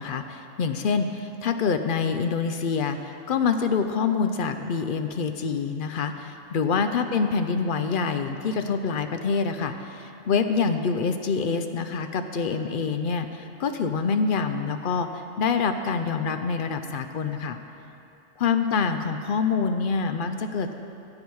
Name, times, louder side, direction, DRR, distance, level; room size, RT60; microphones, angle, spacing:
voice 1, 0.0-15.1 15.4-17.6 18.4-20.7, left 5 dB, 55° left, 8 dB, 0.6 m, -26 dB
14.5 x 8.7 x 4.7 m, 2.8 s
omnidirectional pair, 1.4 m